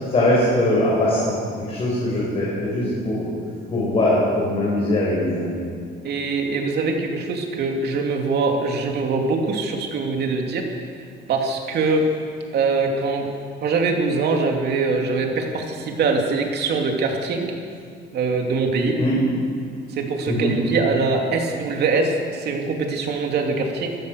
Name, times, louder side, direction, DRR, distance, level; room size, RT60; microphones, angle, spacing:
voice 1, 0.1-1.4 1.7-3.3 3.7-5.6 19.0-19.2 20.3-20.6, left 1 dB, 30° left, -6 dB, 5.4 m, -21 dB
voice 2, 6.0-10.7 11.3-12.1 12.5-13.3 13.6-17.5 18.1-19.0 19.9-23.9, right 4 dB, 55° right, 2 dB, 2.9 m, -23 dB
25.5 x 15.5 x 6.6 m, 2.2 s
cardioid pair, 175°, 20 cm